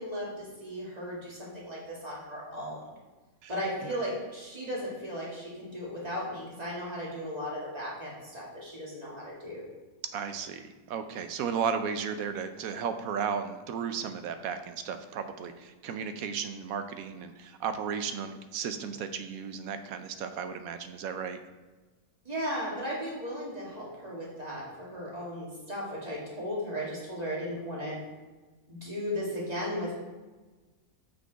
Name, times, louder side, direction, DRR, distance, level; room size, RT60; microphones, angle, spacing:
voice 1, 0.0-2.8 3.5-9.6 22.2-28.0 28.7-29.9, equal, 25° right, -5 dB, 2.0 m, -36 dB
voice 2, 10.0-21.4, right 6 dB, 70° right, 9 dB, 1.0 m, -34 dB
6.5 x 5.3 x 4.5 m, 1.3 s
omnidirectional pair, 1.6 m